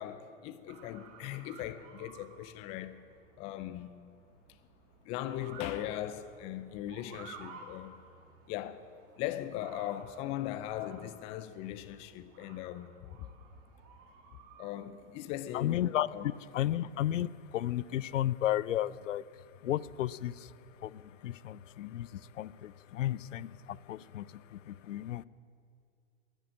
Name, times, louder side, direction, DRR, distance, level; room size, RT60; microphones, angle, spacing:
voice 1, 0.0-3.0 3.4-3.9 5.1-8.0 8.5-8.8 9.2-12.9 14.6-15.8 16.1-16.2, left 12 dB, 15° left, 0.3 m, -39 dB
Motor vehicle (road) / Siren, 0.7-16.2, right 5 dB, 35° right, 1.6 m, -55 dB
voice 2, 15.5-25.2, left 12 dB, 75° left, 0.5 m, -34 dB
11.0 x 9.9 x 8.6 m
hypercardioid pair, 105°, 39 cm